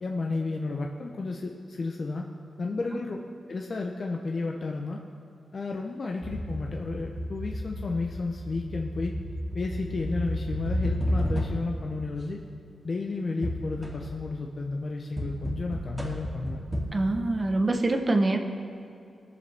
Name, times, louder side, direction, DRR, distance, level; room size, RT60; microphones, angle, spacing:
voice 1, 0.0-2.3 2.6-3.2 3.5-5.0 5.5-9.1 9.5-12.4 12.8-16.6, left 3 dB, 45° left, 1 dB, 0.7 m, -32 dB
sound 1, 6.2-11.9 13.4-14.3 15.2-16.9, equal, 15° right, 2.2 m, -32 dB
voice 2, 16.9-18.4, right 2 dB, 35° right, 5 dB, 0.9 m, -24 dB
19.0 x 6.8 x 3.4 m, 2.5 s
wide cardioid pair, 100°, 0 cm